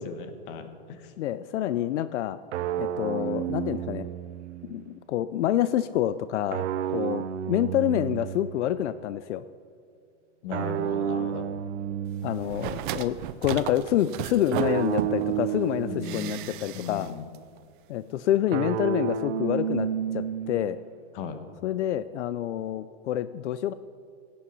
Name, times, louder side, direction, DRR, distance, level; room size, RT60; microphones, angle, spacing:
voice 1, 0.0-1.1 10.4-11.5 15.8-16.4 16.7-17.3 21.1-21.4, left 6 dB, 50° left, 8 dB, 1.3 m, -37 dB
voice 2, 1.2-2.4 2.8-4.1 4.6-9.4 12.2-13.2 13.4-17.1 17.9-19.9 20.1-20.8 21.6-23.7, left 12 dB, 90° left, 14 dB, 0.6 m, -27 dB
sound 1, 2.5-4.8 6.5-8.8 10.5-12.8 14.5-16.8 18.5-20.8, right 9 dB, 80° right, 0.8 m, -31 dB
sound 2, 12.4-15.4 16.0-17.1 17.3-17.4, right 11 dB, 45° right, 0.6 m, -35 dB
16.5 x 8.6 x 5.5 m, 2.4 s
supercardioid pair, 160°, 34 cm